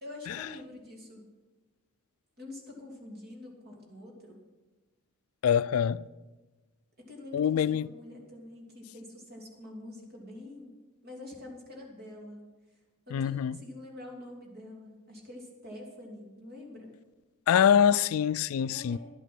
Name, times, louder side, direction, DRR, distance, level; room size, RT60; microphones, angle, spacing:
voice 1, 0.0-1.3 2.4-4.4 7.0-10.7 11.0-12.4 12.7-12.8 13.1-16.9 18.7-19.0, left 1 dB, 45° right, 2.9 m, -46 dB
voice 2, 5.4-6.0 7.3-7.9 13.1-13.6 17.5-19.0, left 8 dB, 65° left, 0.3 m, -24 dB
11.0 x 11.0 x 6.1 m
head